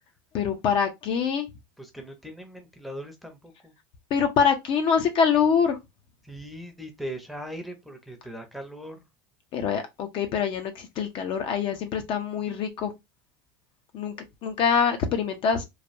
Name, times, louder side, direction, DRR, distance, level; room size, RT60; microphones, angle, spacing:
voice 1, 0.3-1.5 4.1-5.8 9.5-12.9 13.9-14.1 14.4-15.6, left 6 dB, 45° left, 0.6 m, -24 dB
voice 2, 1.8-3.7 6.2-9.0, equal, ahead, 0.7 m, -39 dB
3.2 x 2.1 x 2.6 m
supercardioid pair, 120°, 12 cm